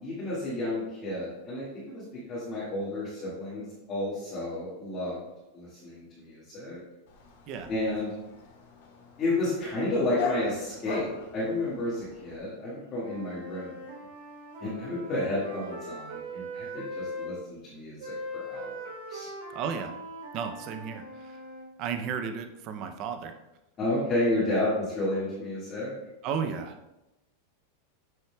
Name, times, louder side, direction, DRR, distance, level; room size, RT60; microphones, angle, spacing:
voice 1, 0.0-5.2 5.5-6.8 7.7-8.1 9.2-13.7 14.6-18.0 18.3-18.8 19.1-19.3 23.8-25.9, left 1 dB, 20° left, -10 dB, 1.7 m, -31 dB
Dog, 7.1-12.4, left 4 dB, 55° left, 1.7 m, -40 dB
Wind instrument woodwind instrument, 12.9-17.3 18.0-21.7, equal, 70° right, 2.1 m, -40 dB
voice 2, 19.5-19.9 20.3-21.4 21.8-23.4 26.2-26.7, right 6 dB, 30° right, 7 dB, 0.4 m, -33 dB
9.0 x 5.7 x 2.2 m, 0.97 s
supercardioid pair, 175°, 0 cm